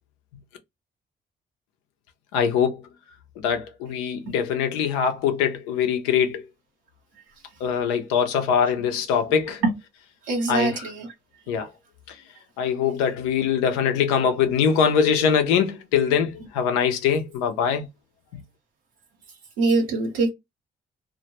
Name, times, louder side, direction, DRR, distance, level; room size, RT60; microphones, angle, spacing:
voice 1, 2.3-2.8 3.4-6.4 7.6-9.6 10.5-10.8 11.5-11.7 12.6-17.9, left 7 dB, 85° left, 0.5 m, -22 dB
voice 2, 10.3-11.1 19.6-20.3, right 3 dB, 85° right, 0.8 m, -23 dB
2.1 x 2.1 x 2.8 m
hypercardioid pair, 45°, 21 cm